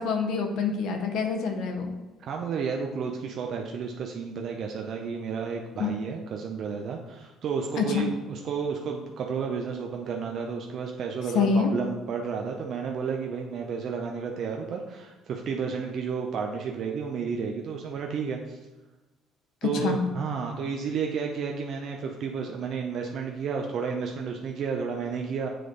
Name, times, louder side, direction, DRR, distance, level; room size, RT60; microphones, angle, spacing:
voice 1, 0.0-1.9 5.8-5.9 7.8-8.1 11.3-11.7 19.6-20.0, left 5 dB, 70° left, 4 dB, 0.7 m, -26 dB
voice 2, 2.3-18.6 19.6-25.5, right 5 dB, 60° right, 1 dB, 0.6 m, -32 dB
7.6 x 3.3 x 3.9 m, 1.1 s
supercardioid pair, 65°, 0 cm